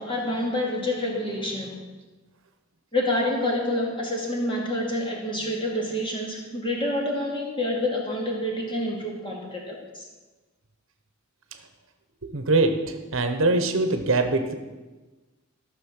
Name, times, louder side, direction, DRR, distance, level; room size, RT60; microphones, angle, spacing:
voice 1, 0.0-1.8 2.9-10.1, left 1 dB, 25° left, -1 dB, 2.3 m, -28 dB
voice 2, 12.2-12.8 13.1-14.5, right 3 dB, 65° right, 7 dB, 1.0 m, -22 dB
13.5 x 6.5 x 6.5 m, 1.2 s
head